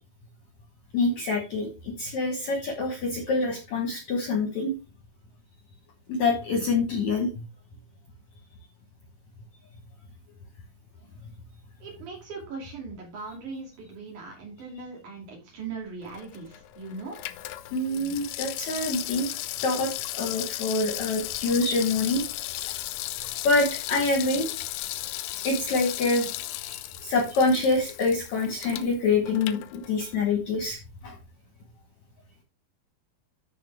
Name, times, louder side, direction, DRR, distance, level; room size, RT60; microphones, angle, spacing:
voice 1, 0.9-4.7 6.1-7.4 17.7-22.2 23.4-24.5 25.4-26.3 27.0-31.2, left 3 dB, 60° left, 3 dB, 2.0 m, -26 dB
voice 2, 11.8-17.2, right 4 dB, 50° right, -1 dB, 4.1 m, -39 dB
Water tap faucet / Sink (filling or washing), 16.0-30.3 30.6-30.7, left 15 dB, 85° left, 2.6 m, -36 dB
12.5 x 5.2 x 3.4 m, 0.30 s
omnidirectional pair, 4.6 m